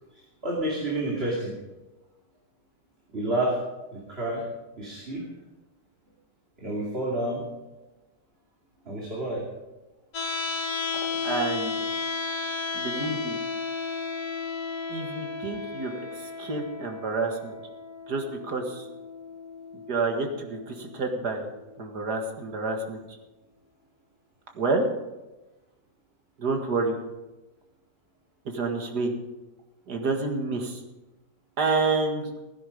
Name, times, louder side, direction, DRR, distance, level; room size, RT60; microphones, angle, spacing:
voice 1, 0.4-1.5 3.1-3.6 4.1-4.4 4.8-5.2 6.6-7.4 8.9-9.4, right 1 dB, 35° right, -4 dB, 2.9 m, -29 dB
sound 1, 10.1-22.2, left 4 dB, 65° left, 1.3 m, -34 dB
voice 2, 11.2-11.9 12.7-13.4 14.9-17.6 18.1-18.9 19.9-21.5 21.8-23.0 24.6-24.9 26.4-27.0 28.5-29.1 29.9-30.8 31.6-32.3, right 3 dB, 70° right, 3 dB, 2.4 m, -28 dB
16.5 x 10.0 x 5.2 m, 1.1 s
omnidirectional pair, 1.8 m